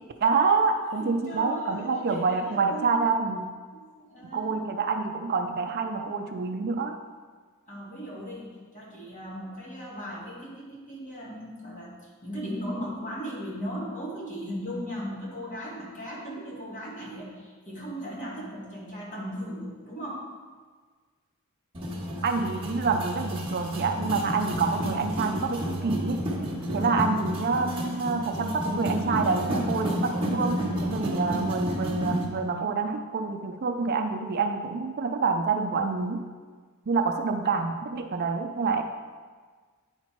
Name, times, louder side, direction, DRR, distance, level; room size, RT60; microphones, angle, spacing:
voice 1, 0.2-3.5 4.3-7.0 22.2-26.2 26.7-36.2 36.9-38.8, right 4 dB, 45° right, 6 dB, 0.4 m, -27 dB
voice 2, 0.9-3.1 3.7-4.6 7.7-20.3, equal, 35° left, -5 dB, 2.0 m, -37 dB
sound 1, 21.7-32.2, equal, 25° right, 1.4 m, -31 dB
9.5 x 4.4 x 4.5 m, 1.5 s
head